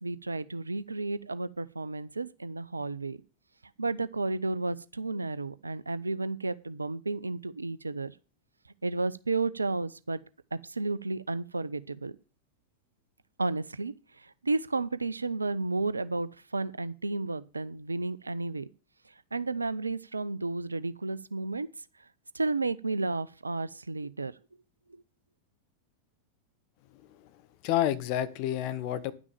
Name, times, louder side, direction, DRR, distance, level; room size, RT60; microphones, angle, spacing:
voice 1, 0.0-3.2 3.8-8.1 8.8-10.2 10.5-12.1 13.4-18.7 19.3-21.7 22.3-24.3 24.9-25.0, right 3 dB, 80° right, 0.6 m, -32 dB
voice 2, 26.9-27.3 27.6-29.1, left 12 dB, 45° left, 1.1 m, -30 dB
10.0 x 6.2 x 7.2 m
figure-of-eight pair, 90°, 0 cm